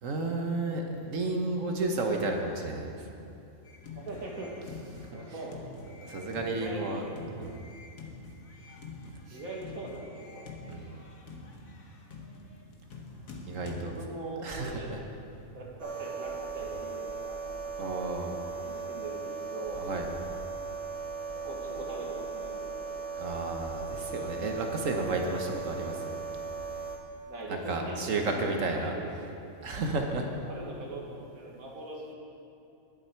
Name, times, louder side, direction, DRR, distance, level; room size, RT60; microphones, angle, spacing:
voice 1, 0.0-3.0 6.0-7.0 7.4-7.6 9.3-9.4 10.7-11.0 13.5-14.0 14.4-15.0 17.8-18.4 19.7-20.1 23.1-26.2 27.5-28.9 29.6-30.3, right 2 dB, 70° right, 2 dB, 1.5 m, -32 dB
sound 1, 3.7-13.8, left 3 dB, 85° left, 1.7 m, -46 dB
voice 2, 4.0-4.5 4.8-5.7 6.5-7.1 9.3-10.5 13.8-15.1 15.5-17.4 18.6-19.8 21.3-22.8 27.3-29.1 30.5-32.1, right 2 dB, 85° right, -2 dB, 2.3 m, -41 dB
sound 2, 15.8-27.0, right 5 dB, 30° right, 1.0 m, -38 dB
20.0 x 7.8 x 4.5 m, 2.7 s
omnidirectional pair, 1.4 m